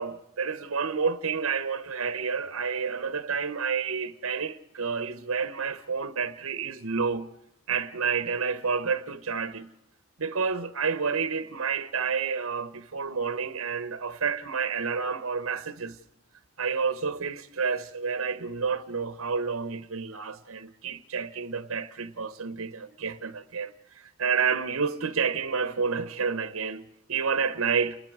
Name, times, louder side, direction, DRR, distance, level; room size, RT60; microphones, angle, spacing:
voice 1, 0.0-7.3 7.7-9.7 10.2-16.0 16.6-28.0, right 5 dB, 85° right, 0.9 m, -29 dB
29.5 x 20.5 x 4.8 m
head